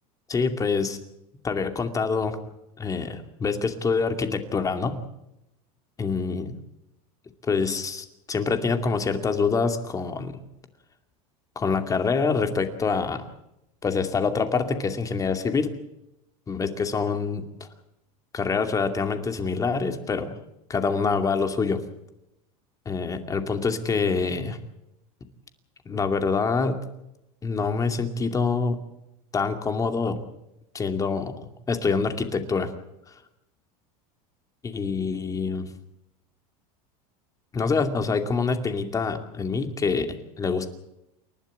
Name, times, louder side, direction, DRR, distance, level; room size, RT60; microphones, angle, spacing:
voice 1, 0.3-1.0 1.4-2.4 2.8-5.0 6.0-6.5 7.4-10.4 11.6-13.3 13.8-15.7 16.5-17.5 18.3-20.3 20.7-21.8 22.9-24.6 25.9-26.8 27.4-28.8 29.3-30.2 30.7-31.3 31.7-32.7 34.6-35.7 37.5-40.7, left 4 dB, 20° left, 7 dB, 2.5 m, -25 dB
29.0 x 12.0 x 8.7 m, 0.86 s
supercardioid pair, 145°, 18 cm